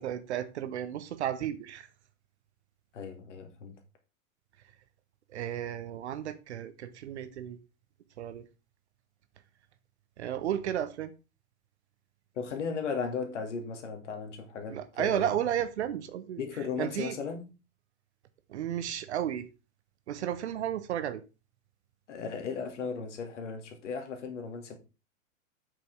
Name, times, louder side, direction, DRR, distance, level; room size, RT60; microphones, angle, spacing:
voice 1, 0.0-1.9 5.3-7.6 8.2-8.4 10.2-11.1 14.7-16.4 16.8-17.1 18.5-19.5 20.1-21.2, right 10 dB, 55° right, 1.1 m, -33 dB
voice 2, 2.9-3.8 12.3-15.3 16.4-17.5 22.1-24.7, left 5 dB, 60° left, 2.5 m, -36 dB
8.1 x 6.1 x 4.7 m
figure-of-eight pair, 95°, 41 cm